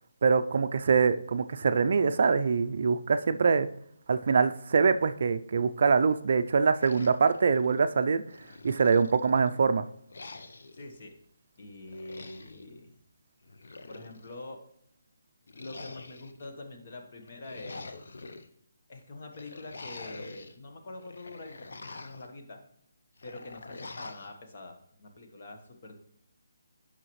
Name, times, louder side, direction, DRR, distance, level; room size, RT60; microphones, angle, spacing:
voice 1, 0.2-3.7 4.1-8.2 8.6-9.9, right 5 dB, 50° right, 10 dB, 0.4 m, -24 dB
sound 1, 6.8-7.9 8.3-9.5 10.1-10.8 11.9-12.7 13.4-14.4 15.5-16.5 17.2-18.5 19.3-20.5 20.9-22.3 23.2-24.3, left 3 dB, 70° left, 0.7 m, -46 dB
voice 2, 10.7-11.1 11.6-12.9 13.9-14.6 15.5-17.9 18.9-22.6 23.2-25.9, left 2 dB, 40° left, 4 dB, 1.2 m, -45 dB
8.9 x 5.7 x 3.1 m, 0.70 s
hypercardioid pair, 170°, 0 cm